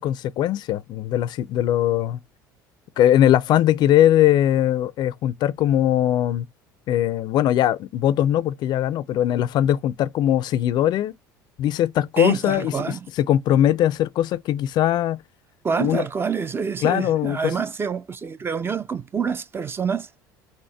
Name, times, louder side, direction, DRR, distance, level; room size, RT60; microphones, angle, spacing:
voice 1, 0.0-2.2 3.0-6.5 6.9-11.1 11.6-15.2 15.8-16.1 16.8-17.5, left 12 dB, 45° left, 0.4 m, -20 dB
voice 2, 12.2-13.1 15.6-20.1, right 6 dB, 20° right, 0.4 m, -27 dB
4.4 x 3.0 x 3.1 m
figure-of-eight pair, 65°, 10 cm